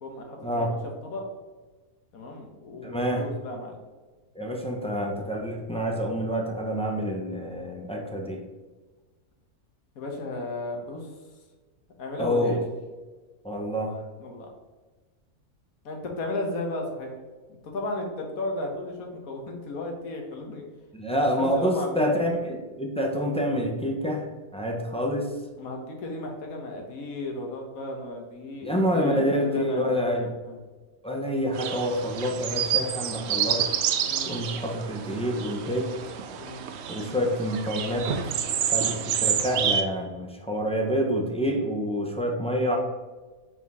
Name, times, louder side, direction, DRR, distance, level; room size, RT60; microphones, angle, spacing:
voice 1, 0.0-0.7 1.0-1.3 2.1-3.8 9.9-11.1 12.0-12.7 14.2-14.5 15.8-17.1 17.6-20.6 21.4-22.1 25.6-30.6 34.1-34.3 36.4-36.6 38.7-38.9, left 2 dB, 70° left, 2 dB, 1.6 m, -34 dB
voice 2, 2.8-3.3 4.4-8.4 12.2-12.5 13.4-14.0 20.9-24.2 24.5-25.3 28.6-30.3 31.0-33.6 34.2-35.9 36.9-38.4 38.7-42.8, equal, 5° left, -1 dB, 0.4 m, -27 dB
sound 1, 31.5-39.8, right 8 dB, 65° right, 0.7 m, -29 dB
6.2 x 4.5 x 3.6 m, 1.3 s
omnidirectional pair, 1.6 m